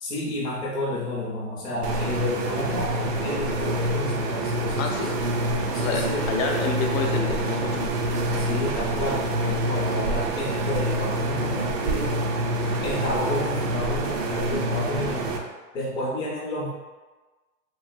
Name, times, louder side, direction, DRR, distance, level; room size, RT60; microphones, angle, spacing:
voice 1, 0.0-5.1 5.7-6.2 8.4-12.2 12.8-15.3 15.7-16.7, left 1 dB, 10° left, -7 dB, 0.4 m, -30 dB
sound 1, 1.8-15.4, right 1 dB, 85° right, 0.6 m, -26 dB
voice 2, 4.8-5.2 5.8-6.0 6.3-7.9, left 4 dB, 60° left, 2 dB, 0.5 m, -28 dB
3.1 x 2.0 x 2.5 m, 1.2 s
hypercardioid pair, 115°, 46 cm